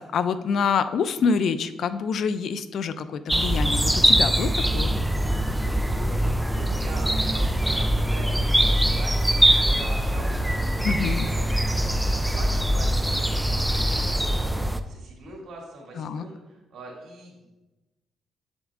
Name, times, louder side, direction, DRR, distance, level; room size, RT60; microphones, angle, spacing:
voice 1, 0.0-4.9 10.8-11.3 16.0-16.2, left 5 dB, 65° left, 12 dB, 0.4 m, -26 dB
sound 1, 3.3-14.8, right 1 dB, 5° right, 0.4 m, -23 dB
voice 2, 5.7-17.5, right 2 dB, 60° right, -2 dB, 2.3 m, -43 dB
7.9 x 7.2 x 2.4 m, 1.1 s
cardioid pair, 90°, 0 cm